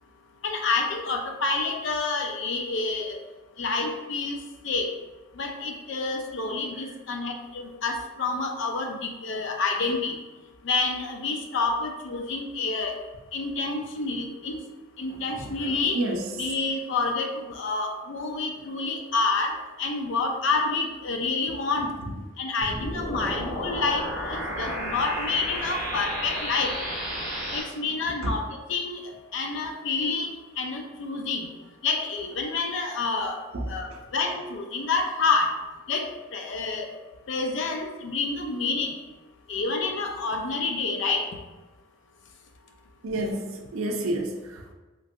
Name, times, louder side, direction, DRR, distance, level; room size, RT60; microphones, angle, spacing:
voice 1, 0.4-3.2 3.6-4.4 4.6-4.9 5.4-10.2 10.6-12.9 13.3-14.6 15.0-16.0 16.3-21.9 22.4-26.8 27.5-31.5 31.8-33.4 33.7-33.9 34.1-35.5 35.9-36.9 37.3-38.9 39.5-41.2, left 3 dB, 65° left, 3 dB, 0.4 m, -28 dB
voice 2, 15.1-16.3 28.0-28.1 33.5-34.0 43.0-44.7, right 1 dB, 80° right, 3 dB, 0.4 m, -31 dB
sound 1, 22.6-27.6, equal, 10° right, 0.7 m, -32 dB
3.1 x 2.5 x 2.5 m, 1.2 s
head